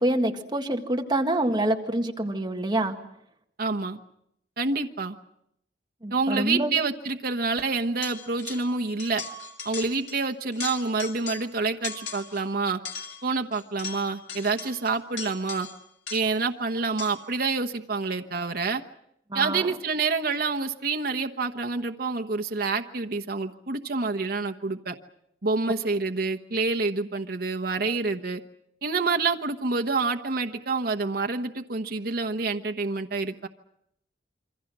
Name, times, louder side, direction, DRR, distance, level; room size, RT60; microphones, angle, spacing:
voice 1, 0.0-3.0 6.0-6.8 19.3-19.7, right 1 dB, 25° right, 4 dB, 1.8 m, -26 dB
voice 2, 3.6-4.0 4.6-5.1 6.1-9.2 9.6-12.8 13.2-15.7 16.1-18.8 19.3-24.9 25.4-28.4 28.8-33.5, right 4 dB, 60° right, 6 dB, 1.2 m, -27 dB
sound 1, 8.0-8.7 9.0-10.2 10.5-11.5 11.8-12.4 12.9-16.5 17.0-17.4, left 6 dB, 85° left, 2.6 m, -39 dB
27.5 x 24.5 x 6.2 m, 0.75 s
head